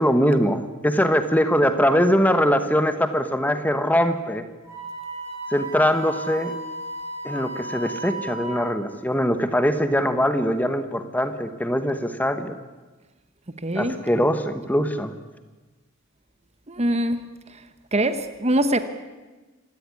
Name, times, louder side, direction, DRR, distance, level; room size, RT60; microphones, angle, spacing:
voice 1, 0.0-4.5 5.5-6.6 7.2-12.6 13.7-15.1, equal, 10° left, 1.3 m, -22 dB
Wind instrument woodwind instrument, 4.7-8.8, right 1 dB, 15° right, 6.9 m, -34 dB
voice 2, 13.6-14.0 16.7-17.2 17.5-17.6 17.9-18.8, right 1 dB, 30° right, 1.2 m, -23 dB
27.0 x 17.0 x 9.8 m
head